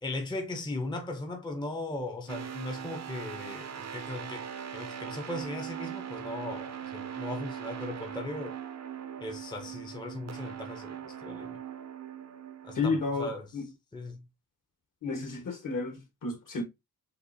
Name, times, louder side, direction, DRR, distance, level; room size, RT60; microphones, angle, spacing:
voice 1, 0.0-4.5 4.7-8.6 9.2-11.6 12.6-13.5 13.9-14.2, left 2 dB, 10° left, 0.6 m, -38 dB
sound 1, 2.3-12.9, right 9 dB, 45° right, 0.6 m, -40 dB
voice 2, 12.7-13.6 15.0-16.6, left 4 dB, 55° left, 1.3 m, -32 dB
6.6 x 2.4 x 2.7 m
wide cardioid pair, 155°, 38 cm